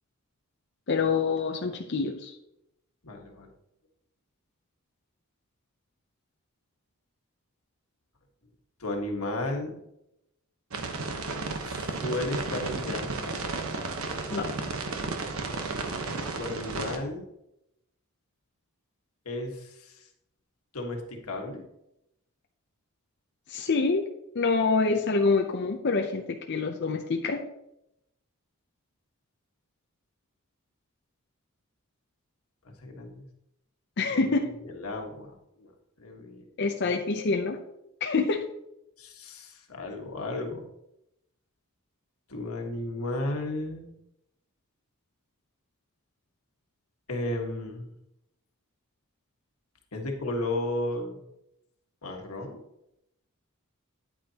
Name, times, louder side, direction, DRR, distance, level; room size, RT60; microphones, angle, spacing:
voice 1, 0.9-2.3 14.3-14.5 23.5-27.4 34.0-34.5 36.6-37.6 38.0-38.5, left 4 dB, 55° left, 3 dB, 0.6 m, -26 dB
voice 2, 3.0-3.5 8.8-9.8 11.6-13.3 16.0-17.2 19.2-20.0 20.7-21.6 32.8-33.2 34.1-34.2 34.6-35.7 36.0-36.5 39.0-40.6 42.3-43.9 47.1-47.9 49.9-51.2 52.0-52.6, left 2 dB, 90° left, 2 dB, 1.6 m, -34 dB
sound 1, 10.7-17.0, right 3 dB, 75° right, 1.1 m, -33 dB
9.8 x 8.7 x 2.9 m, 0.83 s
head